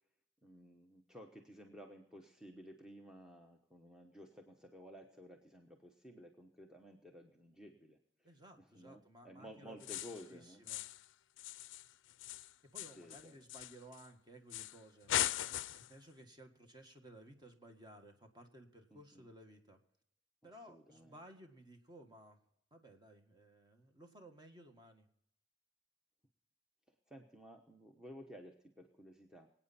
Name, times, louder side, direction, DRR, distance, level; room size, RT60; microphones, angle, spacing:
voice 1, 0.4-8.3 8.6-10.6 13.0-13.4 18.9-19.2 20.4-21.2 26.9-29.5, equal, 5° right, 2 dB, 1.0 m, -55 dB
voice 2, 8.2-9.9 10.3-10.8 12.7-15.1 15.4-19.8 20.4-22.4 22.7-25.1, right 1 dB, 25° right, 5 dB, 1.7 m, -57 dB
sound 1, 9.8-10.3 10.7-11.1 11.4-14.1 14.5-14.8 15.1-15.9, left 12 dB, 85° left, 0.4 m, -39 dB
24.0 x 8.9 x 4.2 m, 0.76 s
head